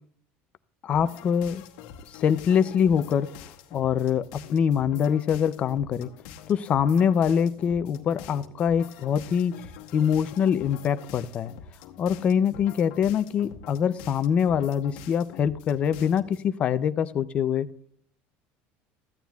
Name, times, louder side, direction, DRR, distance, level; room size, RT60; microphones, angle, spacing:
voice 1, 0.8-1.6 2.1-3.3 3.7-4.2 4.5-6.1 6.5-9.6 9.9-11.5 12.0-17.7, left 8 dB, 25° left, 12 dB, 0.4 m, -24 dB
sound 1, 0.9-16.5, left 8 dB, 85° left, 1.0 m, -46 dB
14.5 x 9.2 x 2.3 m, 0.64 s
cardioid pair, 175°, 5 cm